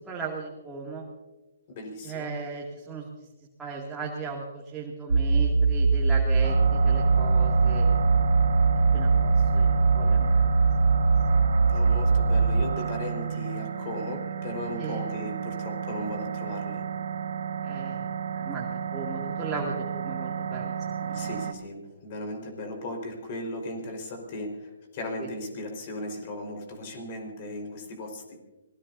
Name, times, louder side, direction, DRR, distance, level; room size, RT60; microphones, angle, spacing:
voice 1, 0.1-1.0 2.0-3.0 3.6-4.4 4.7-7.8 8.9-10.4 14.8-15.0 17.6-18.0 18.4-20.7 21.0-21.3 25.2-25.3, right 3 dB, 10° right, -5 dB, 2.5 m, -37 dB
voice 2, 1.7-2.3 11.7-16.9 21.1-28.4, left 1 dB, 40° left, 3 dB, 4.8 m, -37 dB
sound 1, 5.1-12.6, right 4 dB, 85° right, 0.8 m, -21 dB
sound 2, 6.4-21.5, right 7 dB, 70° right, 1.6 m, -32 dB
26.0 x 19.5 x 2.7 m, 1.1 s
hypercardioid pair, 140°, 0 cm